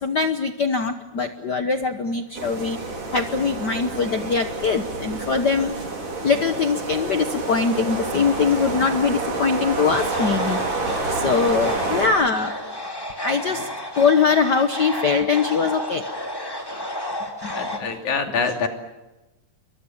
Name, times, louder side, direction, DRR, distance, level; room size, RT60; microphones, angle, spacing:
voice 1, 0.0-2.8 3.1-5.8 6.2-12.6 13.2-13.7 14.0-16.1 17.4-17.5, left 5 dB, 85° left, 8 dB, 0.9 m, -22 dB
sound 1, 2.3-12.1, right 3 dB, 80° right, 6.5 m, -28 dB
sound 2, 9.9-17.8, left 1 dB, 10° left, 2.6 m, -32 dB
voice 2, 17.5-18.7, left 5 dB, 70° left, 4 dB, 4.2 m, -25 dB
29.5 x 23.0 x 7.2 m, 1.0 s
omnidirectional pair, 3.6 m